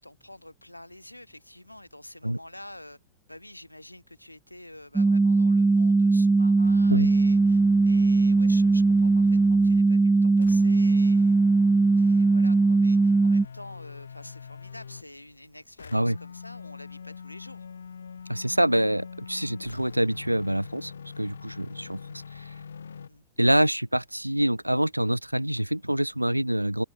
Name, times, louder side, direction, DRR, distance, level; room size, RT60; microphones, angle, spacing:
voice 1, 0.0-3.0 3.3-11.4 11.9-17.7 21.7-22.0 23.1-23.2, left 1 dB, 85° left, 4.7 m, -47 dB
sound 1, 5.0-13.5, right 3 dB, 10° right, 0.9 m, -20 dB
sound 2, 6.6-9.9 10.4-15.1 15.8-23.1, left 6 dB, 70° left, 2.3 m, -43 dB
voice 2, 18.3-22.5 23.4-26.8, right 1 dB, 90° right, 0.5 m, -26 dB
open air
figure-of-eight pair, 90°, 0 cm